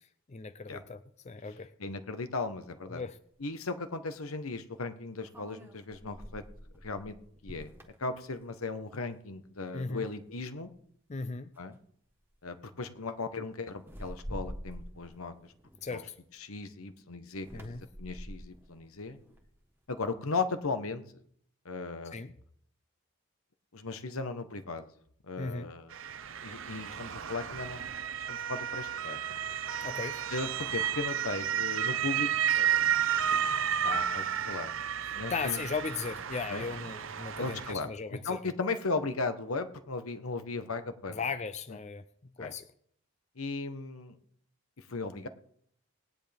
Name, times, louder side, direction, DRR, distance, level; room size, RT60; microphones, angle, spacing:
voice 1, 0.3-1.7 2.9-3.2 9.7-10.1 11.1-11.5 15.8-16.2 17.5-17.8 22.1-22.3 25.4-25.7 29.8-30.3 35.0-38.4 41.1-42.1 42.4-42.7, left 4 dB, 30° left, 12 dB, 0.5 m, -37 dB
voice 2, 1.8-3.0 3.4-6.4 6.8-7.2 7.4-7.7 8.0-10.7 11.6-11.8 12.4-15.5 15.9-16.0 16.4-17.5 18.0-19.2 19.9-21.0 21.6-22.2 23.7-24.9 25.2-25.9 26.4-27.8 28.3-29.2 30.3-32.9 33.3-34.7 35.1-35.6 36.5-36.6 37.4-41.2 42.4-42.5 43.4-44.2 44.8-45.3, left 3 dB, 80° left, 9 dB, 1.2 m, -37 dB
sound 1, 3.0-3.1 5.3-8.9 9.3-9.6 10.0-10.7 11.5-11.7 12.1-12.4 13.8-16.4 17.3-19.7, equal, 10° right, 1.4 m, -47 dB
Motor vehicle (road) / Siren, 25.9-37.7, right 9 dB, 65° right, 0.7 m, -32 dB
19.0 x 10.5 x 3.5 m, 0.66 s
head